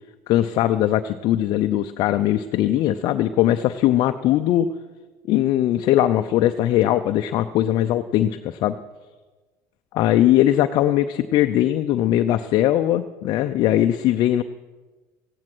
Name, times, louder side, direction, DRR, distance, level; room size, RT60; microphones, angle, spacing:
voice 1, 0.3-4.7 5.3-8.8 9.9-14.4, left 13 dB, 60° left, 8 dB, 0.6 m, -20 dB
15.0 x 10.5 x 6.1 m, 1.3 s
supercardioid pair, 85°, 9 cm